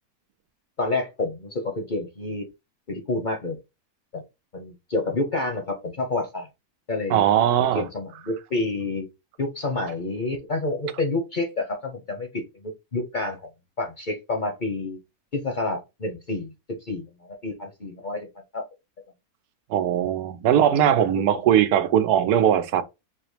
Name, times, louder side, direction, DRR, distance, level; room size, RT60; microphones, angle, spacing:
voice 1, 0.8-2.5 2.9-3.6 4.1-4.2 4.5-6.5 6.9-7.2 7.7-9.1 9.4-13.4 13.8-15.0 15.3-16.5 16.8-18.3 18.5-18.6, left 2 dB, 40° left, 0.7 m, -28 dB
voice 2, 7.1-7.8 19.7-22.8, right 10 dB, 85° right, 1.1 m, -20 dB
5.5 x 2.9 x 3.2 m
omnidirectional pair, 1.6 m